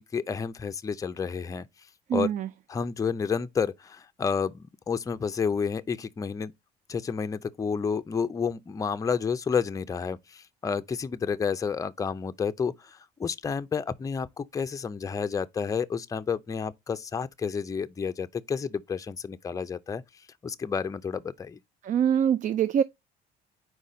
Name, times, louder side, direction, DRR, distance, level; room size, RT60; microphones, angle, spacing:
voice 1, 0.0-1.7 2.1-2.3 2.7-6.5 6.9-20.0 20.4-21.6, left 6 dB, 20° left, 0.5 m, -30 dB
voice 2, 2.1-2.5 21.8-22.8, right 9 dB, 50° right, 0.4 m, -24 dB
4.7 x 4.0 x 5.0 m
cardioid pair, 110°, 17 cm